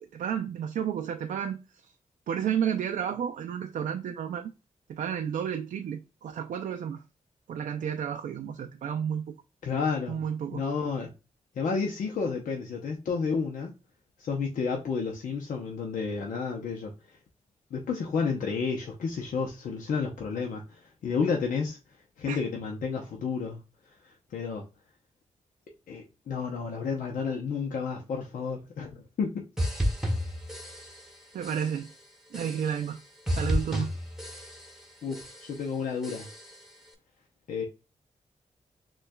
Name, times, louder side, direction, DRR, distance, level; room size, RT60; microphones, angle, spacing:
voice 1, 0.1-1.6 2.3-4.5 4.9-7.0 7.5-9.3 10.1-10.6 22.3-22.4 31.3-31.9 32.3-33.0 33.3-33.9, right 8 dB, 80° right, 0.4 m, -31 dB
voice 2, 9.6-10.2 10.5-11.1 11.6-13.7 14.2-16.9 17.7-21.8 22.2-23.6 24.3-24.6 25.9-29.5 35.0-36.3 37.5-37.6, left 5 dB, 80° left, 0.7 m, -31 dB
sound 1, 29.6-31.2 31.4-31.9 32.3-33.0 33.3-34.8 35.1-35.6 36.0-36.7, equal, 5° right, 1.0 m, -32 dB
6.0 x 2.3 x 2.2 m
cardioid pair, 60°, 14 cm